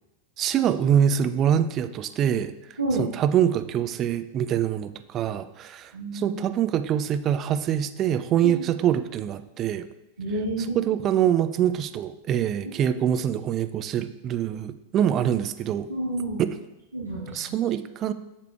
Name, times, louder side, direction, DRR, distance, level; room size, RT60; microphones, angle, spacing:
voice 1, 0.4-2.5 2.9-9.9 10.6-15.9 16.4-16.5 17.3-18.1, right 9 dB, 30° right, 11 dB, 0.4 m, -24 dB
voice 2, 5.9-6.3 8.4-8.5 10.2-10.8 15.9-16.4 16.9-17.4, right 1 dB, 85° right, -8 dB, 1.5 m, -29 dB
8.1 x 6.7 x 2.4 m, 0.94 s
figure-of-eight pair, 90°, 0 cm